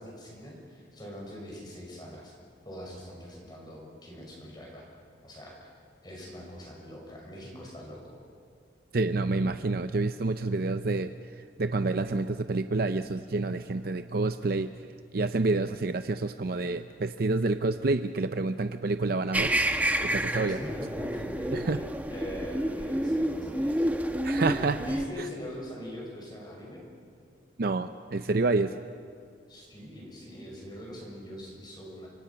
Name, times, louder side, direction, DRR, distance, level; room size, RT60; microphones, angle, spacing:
voice 1, 0.0-2.3 2.6-4.9 5.2-5.7 6.0-8.2 20.4-21.7 22.1-23.9 24.4-26.9 29.5-32.1, equal, 25° left, -1 dB, 5.9 m, -42 dB
voice 2, 8.9-14.7 15.1-19.5 20.0-20.6 21.5-21.8 24.2-24.8 25.2-25.3 27.6-28.8, right 3 dB, 55° right, 9 dB, 0.6 m, -28 dB
sound 1, 19.3-25.1, right 1 dB, 10° right, 1.0 m, -29 dB
28.0 x 26.0 x 5.8 m, 2.2 s
head